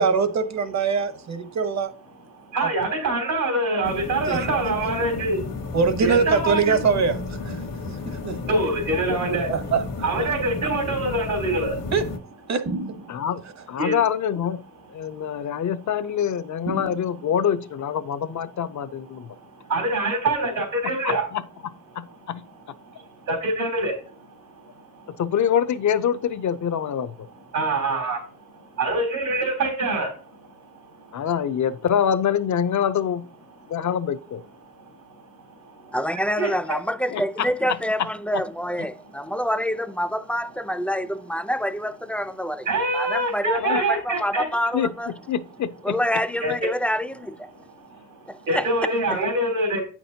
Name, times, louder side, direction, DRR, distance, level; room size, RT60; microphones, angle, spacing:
voice 1, 0.0-1.9 4.3-4.4 5.7-7.2 7.5-7.6 8.0-8.4 9.3-9.8 11.9-12.0 12.5-12.6, right 5 dB, 55° right, 1.0 m, -22 dB
voice 2, 2.3-6.8 7.6-9.5 10.0-11.9 13.1-13.2 13.8-14.0 15.0-15.5 19.1-21.3 22.8-25.2 27.5-31.2 34.6-36.0 36.4-36.7 38.9-39.3 42.6-44.5 46.4-46.5 47.5-49.8, right 2 dB, 85° right, 3.3 m, -26 dB
sound 1, 3.8-12.2, left 3 dB, 75° left, 1.3 m, -33 dB
sound 2, 12.7-13.5 16.7-17.6, right 2 dB, 70° right, 1.7 m, -33 dB
voice 3, 13.1-13.4 13.7-14.6 14.9-19.4 21.0-21.4 22.0-22.4 25.2-27.3 31.1-33.2 33.7-34.4 37.1-37.5 43.6-43.8 44.7-46.0, left 8 dB, 60° left, 0.6 m, -25 dB
voice 4, 35.9-42.7 42.9-45.1 45.8-47.5 48.3-48.7, equal, 5° left, 0.4 m, -27 dB
8.4 x 6.0 x 2.8 m
cardioid pair, 85°, 33 cm